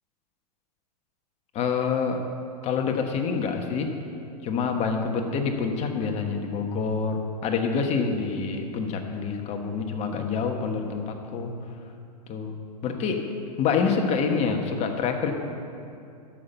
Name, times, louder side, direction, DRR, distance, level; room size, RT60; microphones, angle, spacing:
voice 1, 1.5-2.2 2.6-3.9 4.4-11.5 12.3-12.5 12.8-13.2 13.6-15.3, left 5 dB, 30° left, 4 dB, 1.3 m, -27 dB
12.5 x 5.9 x 7.0 m, 2.6 s
hypercardioid pair, 120°, 21 cm